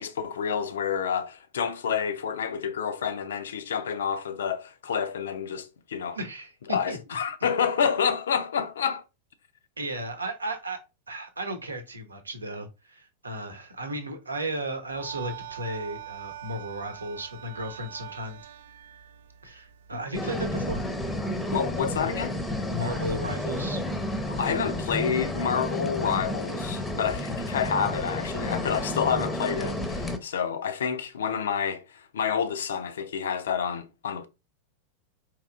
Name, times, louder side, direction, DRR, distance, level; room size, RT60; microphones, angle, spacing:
voice 1, 0.0-6.2 6.7-9.0 19.9-20.0 21.5-22.4 24.3-34.3, left 7 dB, 65° left, 0.5 m, -28 dB
voice 2, 6.1-7.0 9.8-10.8 11.1-18.4 19.4-20.8 22.7-23.8, right 1 dB, 75° right, 0.8 m, -35 dB
sound 1, 14.9-20.1, right 12 dB, 60° right, 0.4 m, -43 dB
sound 2, 20.1-30.2, left 1 dB, 10° left, 0.7 m, -31 dB
4.5 x 2.9 x 2.5 m
figure-of-eight pair, 90°, 0 cm